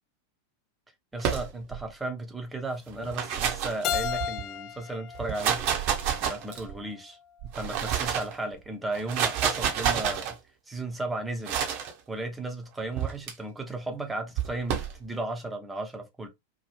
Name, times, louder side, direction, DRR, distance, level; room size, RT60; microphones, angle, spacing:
voice 1, 1.1-5.7 6.2-7.2 7.4-10.4 10.7-16.3, right 2 dB, 10° right, 0.7 m, -35 dB
sound 1, 1.2-1.9 2.9-4.4 5.1-6.8 7.4-8.3 8.9-10.3 11.4-11.9 13.0-13.3 14.4-15.0, right 8 dB, 45° right, 0.8 m, -29 dB
Keyboard (musical), 3.8-6.7, left 8 dB, 35° left, 0.3 m, -34 dB
2.8 x 2.2 x 3.1 m
figure-of-eight pair, 90°, 0 cm